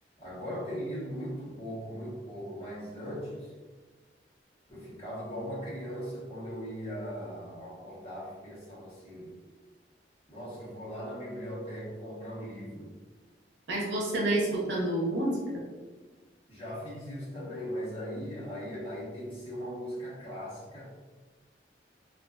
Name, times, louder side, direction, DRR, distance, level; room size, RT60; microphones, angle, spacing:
voice 1, 0.2-3.5 4.7-9.3 10.3-12.9 16.5-20.9, equal, 35° left, -9 dB, 1.0 m, -39 dB
voice 2, 13.7-15.6, right 1 dB, 85° right, -4 dB, 0.7 m, -29 dB
2.4 x 2.4 x 2.3 m, 1.3 s
head